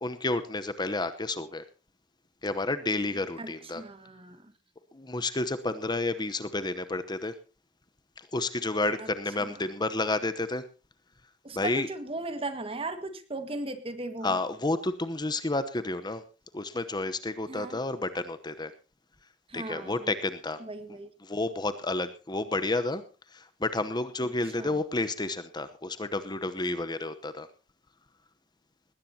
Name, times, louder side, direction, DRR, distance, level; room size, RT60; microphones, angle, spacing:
voice 1, 0.0-1.6 2.4-3.8 4.9-7.4 8.2-10.6 11.5-11.9 14.2-16.2 16.5-18.7 19.5-20.6 21.2-23.0 23.3-27.5, left 2 dB, 25° left, 11 dB, 0.9 m, -30 dB
voice 2, 3.4-4.5 9.0-9.1 9.4-9.7 11.4-14.3 17.5-17.8 19.5-20.1 20.6-21.1 24.6-24.8, right 2 dB, 30° right, 9 dB, 1.8 m, -37 dB
20.0 x 17.5 x 2.8 m, 0.34 s
head